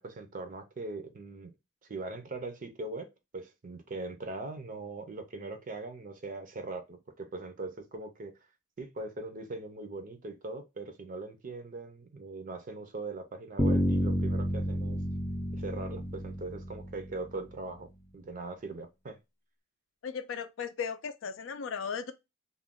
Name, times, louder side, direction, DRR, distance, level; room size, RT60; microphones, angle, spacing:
voice 1, 0.0-1.5 1.8-3.1 3.3-8.3 8.8-15.0 15.5-17.9 18.1-19.2, right 3 dB, 40° right, 0.5 m, -40 dB
Bass guitar, 13.6-17.6, equal, 15° left, 0.5 m, -30 dB
voice 2, 20.0-22.1, left 6 dB, 70° left, 0.4 m, -36 dB
2.4 x 2.2 x 3.5 m
head